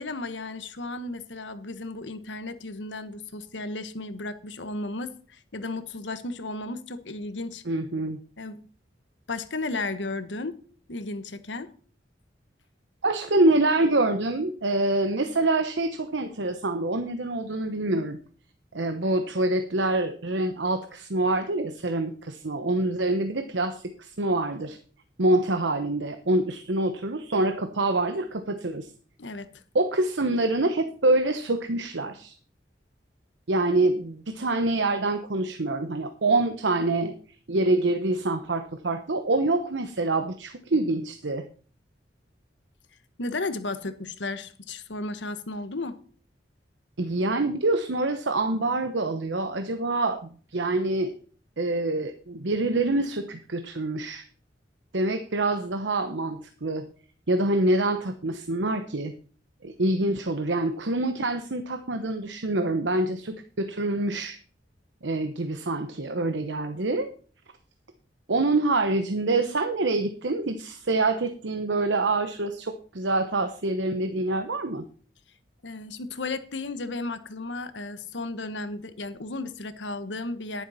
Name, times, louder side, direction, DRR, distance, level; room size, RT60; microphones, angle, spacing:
voice 1, 0.0-7.6 8.4-8.6 9.3-10.6 10.9-11.7 29.2-29.5 43.2-46.0 75.6-80.6, left 2 dB, 85° left, 11 dB, 1.2 m, -34 dB
voice 2, 7.6-8.2 13.0-18.2 18.7-24.8 25.2-28.9 29.7-32.4 33.5-37.1 37.5-41.4 47.0-51.1 51.6-54.3 54.9-56.8 57.3-59.1 59.6-64.4 65.0-67.1 68.3-74.9, right 2 dB, 85° right, 8 dB, 1.0 m, -26 dB
11.0 x 9.9 x 4.2 m, 0.42 s
head